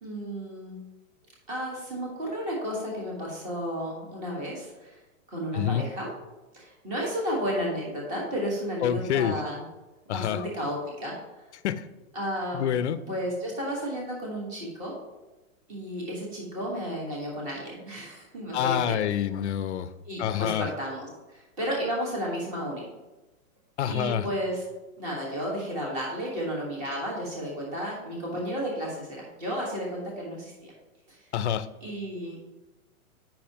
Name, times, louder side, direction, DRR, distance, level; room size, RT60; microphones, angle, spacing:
voice 1, 0.0-0.8 1.5-5.0 5.3-6.1 6.5-9.7 10.0-11.4 12.1-12.8 13.1-14.9 15.7-19.0 20.1-22.8 23.8-24.6 25.0-30.7 31.1-31.2 31.8-32.4, equal, 20° right, -3 dB, 1.4 m, -33 dB
voice 2, 5.5-5.9 8.8-9.4 10.1-10.4 11.6-11.8 12.5-13.0 18.5-19.9 20.2-20.7 23.8-24.3 31.3-31.7, left 10 dB, 55° left, 14 dB, 0.5 m, -27 dB
8.5 x 5.7 x 2.9 m, 1.1 s
hypercardioid pair, 170°, 42 cm